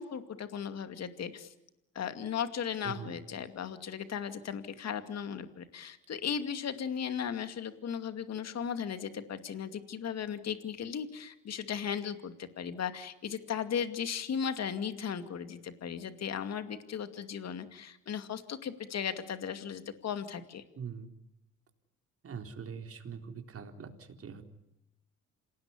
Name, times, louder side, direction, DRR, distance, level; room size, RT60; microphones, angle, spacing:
voice 1, 0.0-1.5 1.9-20.6, left 7 dB, 60° left, 10 dB, 2.5 m, -36 dB
voice 2, 2.8-3.2 20.8-21.1 22.2-24.4, right 6 dB, 50° right, 5 dB, 4.0 m, -43 dB
27.5 x 18.5 x 9.9 m, 0.87 s
cardioid pair, 90°, 30 cm